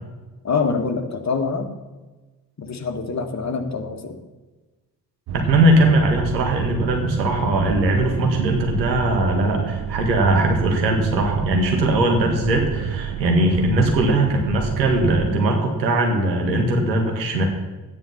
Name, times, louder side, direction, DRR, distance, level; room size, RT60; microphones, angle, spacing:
voice 1, 0.4-1.7 2.6-4.2, left 4 dB, 30° left, 6 dB, 1.8 m, -25 dB
sound 1, 5.3-15.4, right 9 dB, 50° right, 0.9 m, -29 dB
voice 2, 5.3-17.5, right 1 dB, 85° right, 2 dB, 1.9 m, -20 dB
13.0 x 9.8 x 5.7 m, 1.2 s
figure-of-eight pair, 45°, 50 cm